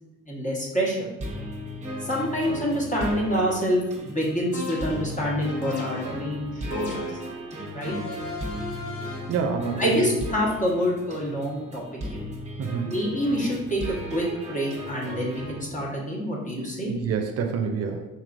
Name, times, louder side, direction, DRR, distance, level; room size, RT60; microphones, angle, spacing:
voice 1, 0.3-1.1 2.0-7.0 7.5-7.9 9.8-12.2 12.8-13.8 14.1-16.9, equal, 25° left, -4 dB, 1.2 m, -27 dB
sound 1, 1.2-15.6, equal, 25° right, 0.9 m, -36 dB
sound 2, 4.5-5.2 5.6-6.2 6.7-7.3 7.8-9.4, left 4 dB, 75° left, 0.8 m, -35 dB
voice 2, 9.3-10.1 12.6-12.9 16.6-18.1, right 6 dB, 55° right, 4 dB, 0.5 m, -27 dB
4.3 x 3.1 x 2.5 m, 1.1 s
cardioid pair, 90°, 30 cm